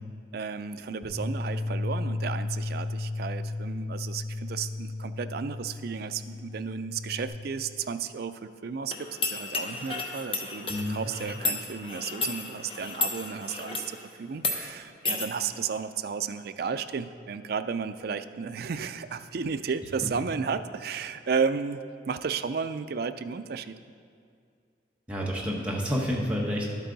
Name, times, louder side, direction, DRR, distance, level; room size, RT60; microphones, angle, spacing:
voice 1, 0.3-21.8 22.1-23.7, right 6 dB, 50° right, 10 dB, 0.4 m, -33 dB
Bass guitar, 1.0-7.3, left 2 dB, 65° left, 2.9 m, -34 dB
sound 1, 8.9-13.9 14.4-14.6 15.1-15.3, left 3 dB, 30° left, 0.7 m, -32 dB
voice 2, 10.7-11.1 20.0-20.1 25.1-26.7, equal, 5° right, -4 dB, 1.2 m, -29 dB
11.5 x 8.2 x 4.0 m, 2.2 s
head